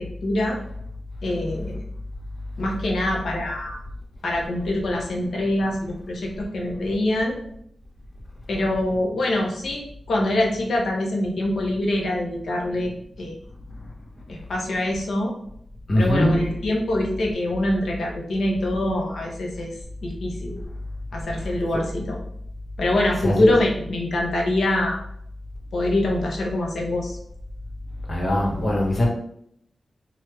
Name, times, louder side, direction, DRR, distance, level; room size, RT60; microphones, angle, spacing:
voice 1, 0.2-0.6 1.2-1.8 2.6-3.8 4.2-7.4 8.5-9.8 10.1-12.9 13.2-13.4 14.3-15.3 15.9-19.7 20.0-20.6 21.1-22.2 22.8-25.0 25.7-27.2, left 1 dB, 80° left, -1 dB, 0.7 m, -24 dB
voice 2, 15.9-16.4 23.2-23.6 28.1-29.1, left 1 dB, 55° left, -1 dB, 0.9 m, -21 dB
3.2 x 2.3 x 3.2 m, 0.71 s
cardioid pair, 70°, 0 cm